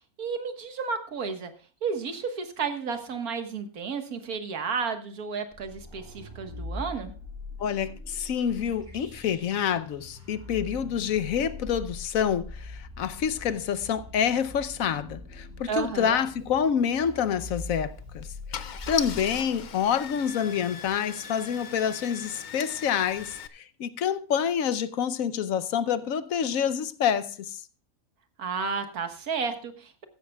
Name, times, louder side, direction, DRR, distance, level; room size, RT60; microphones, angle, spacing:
voice 1, 0.2-1.5 1.8-7.1 15.7-16.2 28.4-30.0, right 5 dB, 85° right, 1.9 m, -32 dB
sound 1, 5.5-20.9, left 1 dB, 40° right, 3.2 m, -42 dB
voice 2, 7.6-27.6, left 8 dB, 70° left, 1.1 m, -27 dB
Car / Engine starting, 17.4-17.6 18.2-18.3 18.5-23.5, left 7 dB, 55° left, 0.5 m, -39 dB
15.0 x 12.0 x 2.3 m
omnidirectional pair, 1.5 m